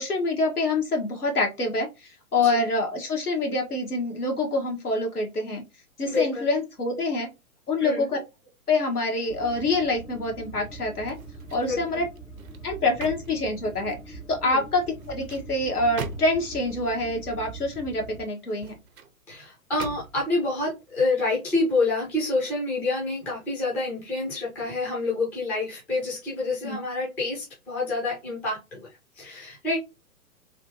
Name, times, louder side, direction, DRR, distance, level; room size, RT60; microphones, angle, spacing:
voice 1, 0.0-5.6 6.0-7.3 7.7-8.2 8.7-11.2 11.5-12.1 12.6-18.7 26.6-26.8, left 2 dB, 85° left, 1 dB, 1.4 m, -26 dB
voice 2, 6.0-6.4 7.8-8.1 11.7-12.0 14.4-14.6 19.3-28.9 29.2-29.8, left 3 dB, 5° left, -5 dB, 0.4 m, -28 dB
sound 1, 9.3-18.2, right 2 dB, 60° left, 1.2 m, -43 dB
sound 2, 11.1-11.8 12.2-14.1 14.9-16.6 18.4-19.1 19.8-20.4 20.9-21.1, right 5 dB, 70° right, 0.8 m, -41 dB
3.3 x 2.7 x 2.8 m, 0.25 s
figure-of-eight pair, 120°, 44 cm